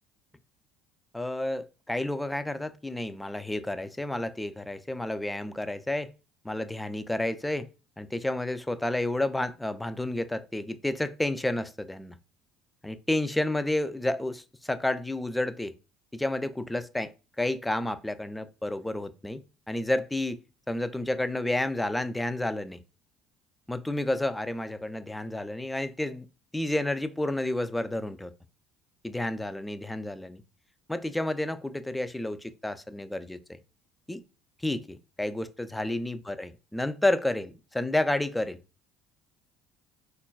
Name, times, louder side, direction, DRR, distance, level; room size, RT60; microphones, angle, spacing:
voice 1, 1.1-6.1 6.4-7.7 8.0-12.1 12.8-15.7 16.1-17.1 17.4-19.4 19.7-20.4 20.7-22.8 23.7-26.3 26.5-28.3 29.0-30.4 30.9-33.4 34.1-34.2 34.6-38.6, left 1 dB, 10° left, 0.3 m, -30 dB
3.8 x 2.2 x 2.2 m
hypercardioid pair, 65°, 0 cm